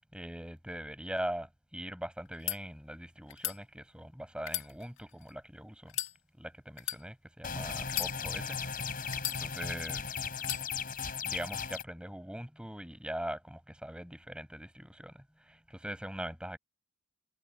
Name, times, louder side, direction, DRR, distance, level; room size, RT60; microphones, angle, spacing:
voice 1, 0.1-5.9 6.4-9.1 9.4-10.3 11.2-16.6, right 1 dB, 5° right, 7.8 m, -42 dB
sound 1, 2.2-2.6 3.3-3.6 4.4-5.3 5.9-6.1 6.8-7.0 7.8-8.5 9.1-9.8 10.4-10.6, left 12 dB, 65° left, 2.3 m, -36 dB
sound 2, 7.4-11.8, left 6 dB, 45° left, 4.8 m, -37 dB
head